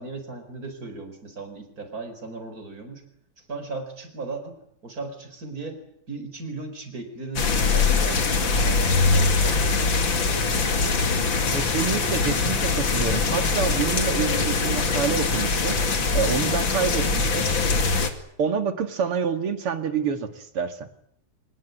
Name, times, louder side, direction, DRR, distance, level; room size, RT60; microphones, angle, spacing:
voice 1, 0.0-3.0 3.4-5.8 6.1-11.3, right 3 dB, 40° right, 7 dB, 5.0 m, -37 dB
sound 1, 7.4-18.1, left 4 dB, 60° left, 3.1 m, -22 dB
voice 2, 11.5-15.8 16.1-17.5 18.4-20.9, right 6 dB, 85° right, 9 dB, 3.1 m, -27 dB
24.5 x 21.0 x 9.4 m, 0.69 s
omnidirectional pair, 2.4 m